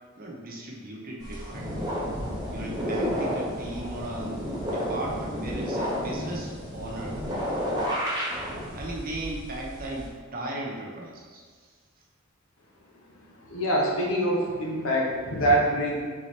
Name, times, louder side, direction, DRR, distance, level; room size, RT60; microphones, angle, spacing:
voice 1, 0.2-1.9 2.5-4.3 4.7-7.2 8.3-11.7, right 1 dB, 45° right, -2 dB, 0.7 m, -37 dB
sound 1, 1.2-10.1, equal, 20° right, 1.0 m, -31 dB
voice 2, 13.5-15.9, right 1 dB, 75° left, -1 dB, 0.9 m, -24 dB
4.2 x 3.7 x 3.2 m, 1.5 s
head